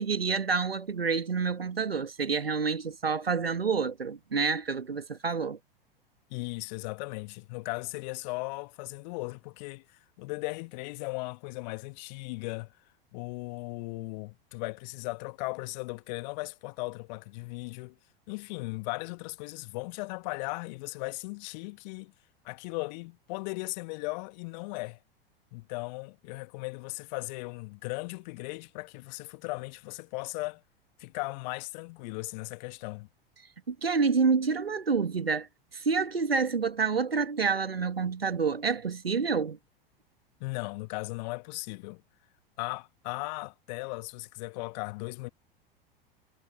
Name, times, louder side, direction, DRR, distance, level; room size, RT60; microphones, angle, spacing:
voice 1, 0.0-5.6 33.7-35.5 35.7-39.6, right 5 dB, 80° right, 2.0 m, -28 dB
voice 2, 6.3-12.7 13.1-18.0 18.3-22.1 22.4-25.0 25.5-30.6 31.0-33.1 40.4-42.0 42.6-45.3, left 26 dB, 45° left, 1.6 m, -37 dB
figure-of-eight pair, 90°, 29 cm